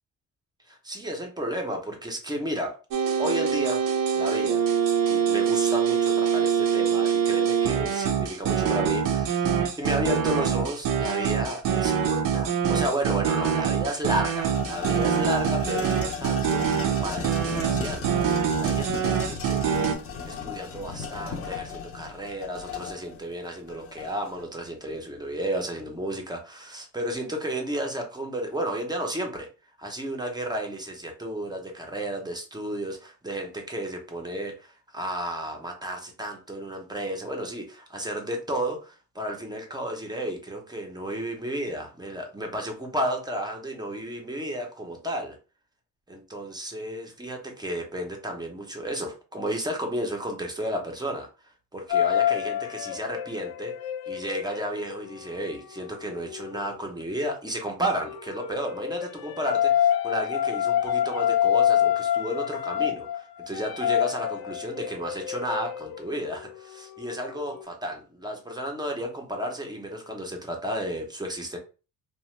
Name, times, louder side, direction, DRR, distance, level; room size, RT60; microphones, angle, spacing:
voice 1, 0.7-2.7 3.2-3.8 4.1-4.6 5.1-18.2 18.5-20.0 20.2-29.5 29.8-45.4 46.1-51.3 51.7-53.7 54.1-71.6, right 1 dB, 10° right, 2 dB, 0.5 m, -33 dB
sound 1, 2.9-19.9, right 7 dB, 60° right, 0.5 m, -24 dB
sound 2, 13.3-13.4 13.8-24.5, left 6 dB, 40° left, 0.5 m, -36 dB
sound 3, 51.9-56.6 57.8-67.6, left 10 dB, 85° left, 0.5 m, -27 dB
2.8 x 2.1 x 3.1 m, 0.34 s
cardioid pair, 145°, 37 cm